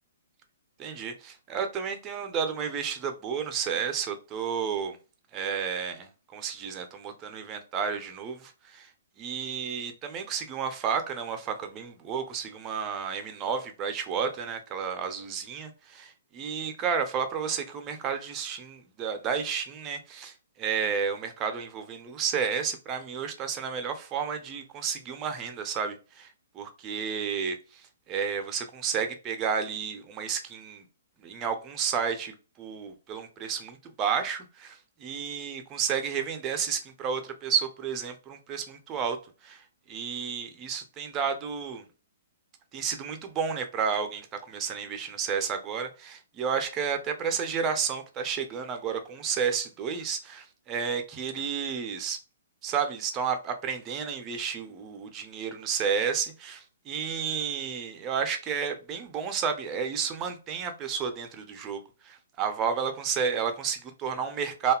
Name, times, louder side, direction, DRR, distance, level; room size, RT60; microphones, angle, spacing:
voice 1, 0.8-5.0 5.3-8.9 9.2-26.3 26.5-27.8 28.1-30.8 31.2-39.2 39.4-39.6 39.9-41.9 42.7-52.2 52.6-64.7, right 6 dB, 25° right, 0.5 m, -31 dB
2.7 x 2.3 x 2.3 m
figure-of-eight pair, 120°, 0 cm